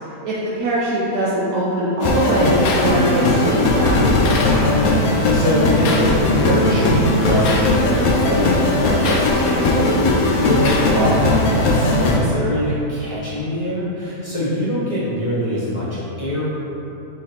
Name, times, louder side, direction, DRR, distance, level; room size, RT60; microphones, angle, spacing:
voice 1, 0.2-4.0, right 1 dB, 85° right, -8 dB, 1.2 m, -21 dB
sound 1, 2.0-12.2, left 2 dB, 80° left, 1.1 m, -17 dB
voice 2, 4.5-16.5, equal, 30° left, -10 dB, 0.8 m, -24 dB
3.8 x 3.3 x 4.3 m, 2.9 s
omnidirectional pair, 1.5 m